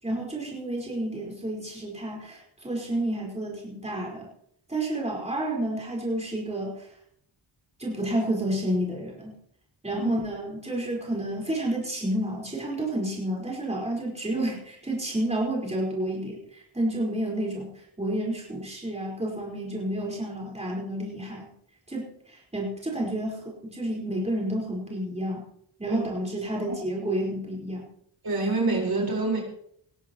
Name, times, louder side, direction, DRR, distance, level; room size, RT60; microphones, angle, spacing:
voice 1, 0.0-4.3 4.7-6.9 7.8-9.3 9.8-21.5 21.9-25.4 25.8-27.8, right 1 dB, 15° right, -3 dB, 4.7 m, -30 dB
voice 2, 28.2-29.4, right 3 dB, 50° right, -1 dB, 4.7 m, -26 dB
20.0 x 16.0 x 3.1 m, 0.67 s
wide cardioid pair, 115°, 47 cm